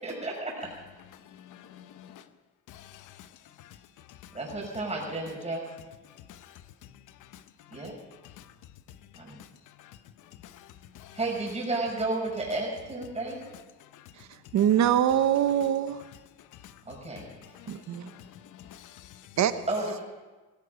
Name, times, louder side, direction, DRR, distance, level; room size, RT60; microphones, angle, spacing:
voice 1, 0.0-0.7 4.3-5.6 7.7-7.9 9.2-9.4 11.1-13.4 16.9-17.3 19.7-20.0, right 2 dB, 20° right, -2 dB, 6.1 m, -32 dB
voice 2, 1.3-2.2 2.7-3.3 3.6-3.8 4.1-4.4 6.3-6.5 7.3-7.4 7.7-7.9 8.4-8.5 9.8-10.0 10.4-10.7 10.9-11.2 13.9-14.1 16.6-16.7 17.5-18.2, left 11 dB, 85° left, 12 dB, 0.9 m, -50 dB
voice 3, 14.5-16.0 17.7-18.1 19.4-19.5, right 10 dB, 65° right, 11 dB, 1.1 m, -23 dB
16.5 x 16.0 x 5.1 m, 1.2 s
cardioid pair, 90°, 30 cm